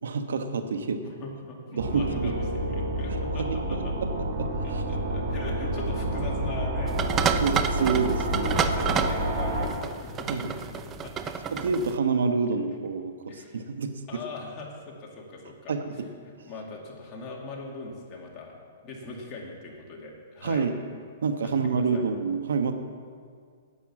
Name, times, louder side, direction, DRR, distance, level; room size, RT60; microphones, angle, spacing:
voice 1, 0.0-1.0 1.7-2.3 3.4-4.8 7.4-8.5 10.3-10.5 11.6-13.1 13.5-14.2 15.7-15.8 20.4-20.7 21.2-22.7, right 5 dB, 85° right, 8 dB, 1.1 m, -28 dB
voice 2, 1.0-3.9 4.6-7.2 8.3-11.4 13.3-13.6 14.1-16.1 16.5-18.6 18.8-20.7 21.4-22.1, left 3 dB, 25° left, -2 dB, 2.4 m, -41 dB
sound 1, 1.8-9.7, right 1 dB, 55° right, 3.4 m, -29 dB
sound 2, 2.2-11.9, left 8 dB, 50° left, 3.7 m, -48 dB
sound 3, 6.9-12.0, right 7 dB, 20° right, 0.5 m, -30 dB
11.0 x 9.0 x 7.2 m, 2.1 s
hypercardioid pair, 150°, 0 cm